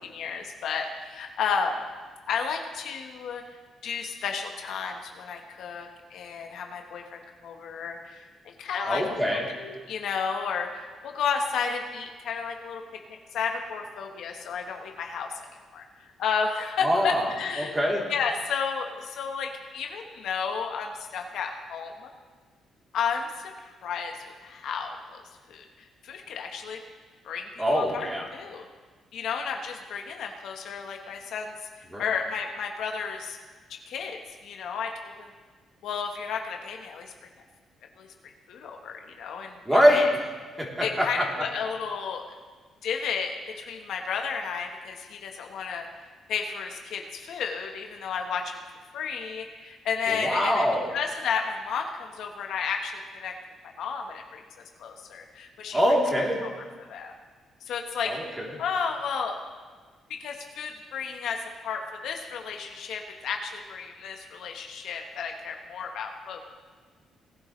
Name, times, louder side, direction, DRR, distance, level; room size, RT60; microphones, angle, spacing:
voice 1, 0.0-1.8 2.3-3.4 3.8-12.8 13.1-15.4 15.7-17.7 18.1-22.1 22.9-23.3 23.8-25.2 25.5-26.8 27.2-28.6 29.1-33.4 33.7-35.3 35.8-37.1 38.0-38.1 38.5-40.1 40.8-42.2 42.8-45.9 46.3-48.6 48.9-53.3 53.8-54.4 54.8-55.8 56.4-57.1 57.6-58.2 58.6-59.4 60.1-66.4, left 6 dB, 75° left, 3 dB, 1.2 m, -32 dB
voice 2, 8.9-9.4 16.8-17.3 17.6-18.0 27.6-28.3 31.9-32.0 39.6-40.1 40.6-41.2 50.2-50.9 55.7-56.4 58.1-58.2, equal, 10° right, -3 dB, 3.2 m, -23 dB
19.5 x 10.5 x 3.2 m, 1.4 s
cardioid pair, 90°, 0 cm